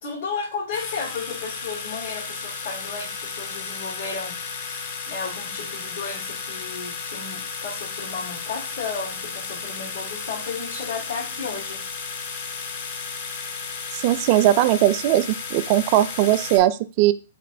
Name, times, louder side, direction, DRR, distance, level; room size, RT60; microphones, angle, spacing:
voice 1, 0.0-11.8, left 5 dB, 70° left, -7 dB, 1.5 m, -33 dB
sound 1, 0.7-16.6, left 5 dB, 50° left, 0.8 m, -34 dB
voice 2, 13.9-17.1, right 13 dB, 40° right, 12 dB, 0.3 m, -19 dB
3.9 x 3.0 x 2.6 m, 0.34 s
hypercardioid pair, 125°, 0 cm